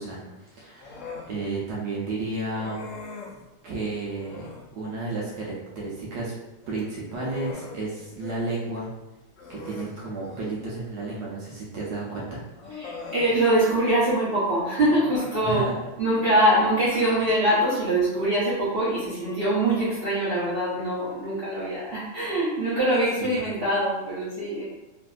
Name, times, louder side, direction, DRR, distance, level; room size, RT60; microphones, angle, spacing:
voice 1, 0.0-2.8 3.6-4.5 4.7-6.3 6.7-8.9 9.5-12.4 15.4-15.7 16.1-16.2 23.2-23.4, right 2 dB, 70° right, -5 dB, 1.1 m, -32 dB
Human voice, 0.8-1.3 2.5-3.4 4.2-4.7 6.6-8.4 8.7-8.9 9.4-10.6 11.8-11.9 12.6-13.4 14.8-15.6 16.6-17.3, left 4 dB, 75° left, 0.7 m, -41 dB
voice 2, 12.8-15.6 16.0-24.6, right 1 dB, 45° right, -11 dB, 0.8 m, -23 dB
3.2 x 2.6 x 2.3 m, 0.99 s
omnidirectional pair, 2.1 m